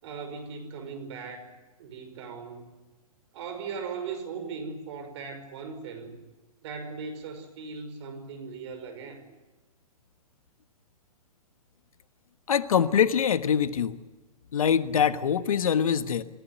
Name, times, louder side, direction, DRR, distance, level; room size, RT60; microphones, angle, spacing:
voice 1, 0.0-1.5 1.8-2.8 3.3-6.2 6.6-9.3, right 5 dB, 50° right, 9 dB, 5.8 m, -38 dB
voice 2, 12.5-14.0 14.5-16.2, left 8 dB, 65° left, 12 dB, 1.4 m, -24 dB
28.0 x 15.5 x 9.9 m, 1.2 s
figure-of-eight pair, 120°, 19 cm